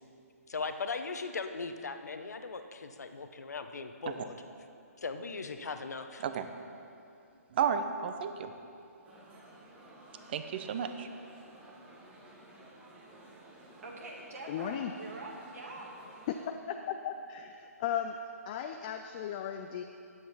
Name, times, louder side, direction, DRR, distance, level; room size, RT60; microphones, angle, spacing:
voice 1, 0.5-4.4 5.0-6.2, left 4 dB, 80° left, 8 dB, 0.8 m, -38 dB
voice 2, 7.5-8.5 10.3-11.1, right 7 dB, 40° right, 8 dB, 0.6 m, -32 dB
sound 1, 9.0-16.5, right 1 dB, 10° right, 1.0 m, -54 dB
voice 3, 13.8-15.9, right 2 dB, 65° right, -2 dB, 1.5 m, -44 dB
voice 4, 14.5-14.9 16.3-18.2 18.5-19.8, left 9 dB, 25° left, 5 dB, 0.4 m, -36 dB
9.3 x 7.7 x 5.7 m, 2.6 s
hypercardioid pair, 155°, 9 cm